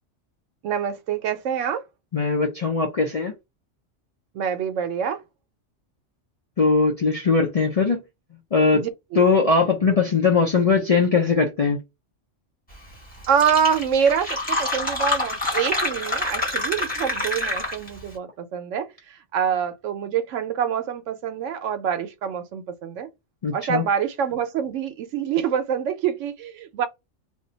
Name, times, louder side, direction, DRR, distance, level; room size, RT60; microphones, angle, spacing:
voice 1, 0.6-1.8 4.3-5.2 8.7-9.2 13.3-23.1 23.5-26.9, right 7 dB, 85° right, 1.0 m, -26 dB
voice 2, 2.1-3.3 6.6-8.0 8.5-8.8 9.2-11.8 23.4-23.8, left 4 dB, 50° left, 0.4 m, -20 dB
Fill (with liquid), 12.9-13.0 13.2-18.0, left 2 dB, 10° left, 0.9 m, -26 dB
2.6 x 2.2 x 3.8 m
omnidirectional pair, 1.2 m